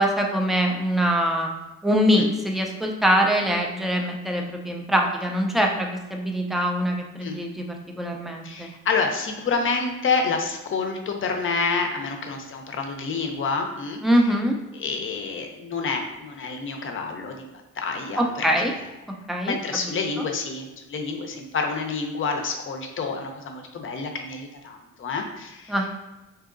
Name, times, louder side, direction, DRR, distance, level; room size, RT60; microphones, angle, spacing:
voice 1, 0.0-1.5 1.8-8.7 14.0-14.6 18.2-18.7 19.3-19.5 25.7-25.9, equal, ahead, 1 dB, 0.4 m, -23 dB
voice 2, 8.4-14.0 14.7-17.5 17.8-18.7 19.4-25.7, left 4 dB, 45° left, 3 dB, 0.6 m, -28 dB
3.6 x 2.8 x 2.5 m, 1.0 s
cardioid pair, 90°, 30 cm